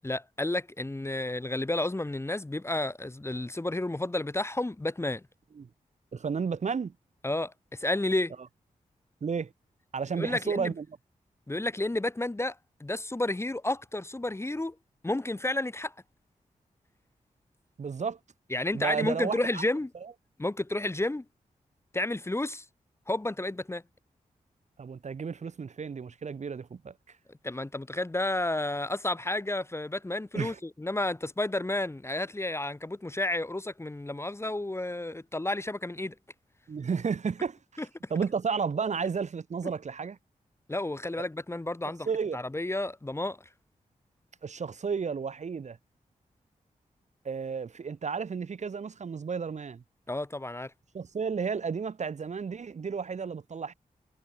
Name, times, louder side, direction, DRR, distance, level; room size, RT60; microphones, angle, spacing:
voice 1, 0.0-5.2 7.2-8.3 10.2-10.7 11.5-14.7 15.0-15.9 18.5-19.9 20.4-21.2 21.9-22.6 23.1-23.8 27.4-36.1 37.8-37.9 40.7-42.1 42.3-43.4 50.1-50.7, left 2 dB, 20° left, 0.9 m, -31 dB
voice 2, 6.1-6.9 9.2-9.5 9.9-10.8 17.8-18.2 18.7-19.6 20.0-20.1 24.8-27.2 30.3-30.6 36.7-40.2 42.1-42.4 44.4-45.8 47.2-49.8 50.9-53.7, right 5 dB, 55° right, 0.9 m, -32 dB
cardioid pair, 55°, 14 cm